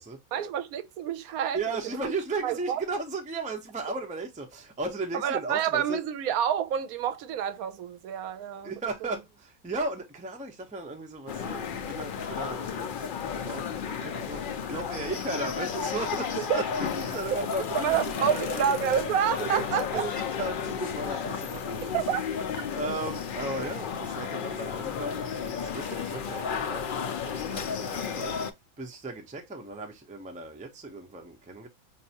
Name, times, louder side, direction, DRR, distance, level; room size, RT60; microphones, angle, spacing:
voice 1, 0.3-2.1 2.4-2.8 5.1-8.7 16.4-16.6 17.7-20.1 20.8-20.9 21.9-22.2 22.6-22.7, right 9 dB, 80° right, 1.0 m, -28 dB
voice 2, 1.5-6.0 8.6-18.6 19.4-22.2 22.7-28.3 28.8-31.7, right 3 dB, 10° right, 0.4 m, -36 dB
sound 1, 11.3-28.5, left 7 dB, 70° left, 0.4 m, -33 dB
5.3 x 2.6 x 2.8 m
omnidirectional pair, 1.5 m